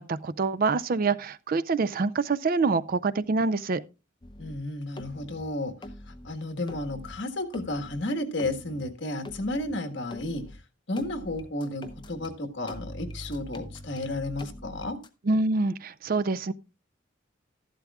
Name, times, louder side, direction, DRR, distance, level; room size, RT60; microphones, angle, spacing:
voice 1, 0.0-3.8 15.3-16.5, right 3 dB, 45° right, 0.4 m, -26 dB
sound 1, 4.2-4.6 5.0-5.4 5.8-6.3 6.7-7.1 7.5-8.0 8.4-8.9 9.2-9.7 10.1-10.6 11.0-12.3 12.7-15.1, left 1 dB, 25° left, 0.8 m, -43 dB
voice 2, 4.4-5.7 6.1-10.4 10.9-15.0, left 1 dB, 60° left, 1.5 m, -32 dB
13.5 x 11.5 x 2.3 m
head